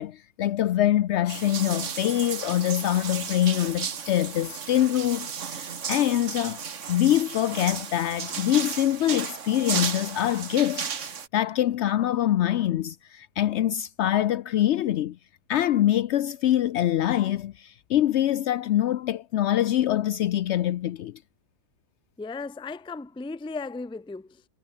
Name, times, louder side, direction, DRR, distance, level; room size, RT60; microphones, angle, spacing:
voice 1, 0.0-6.6 6.9-10.9 11.3-15.2 15.5-21.1, left 12 dB, 70° left, 0.6 m, -24 dB
sound 1, 1.3-11.3, right 7 dB, 50° right, 1.6 m, -34 dB
voice 2, 22.2-24.5, left 3 dB, 10° left, 0.3 m, -36 dB
omnidirectional pair, 1.7 m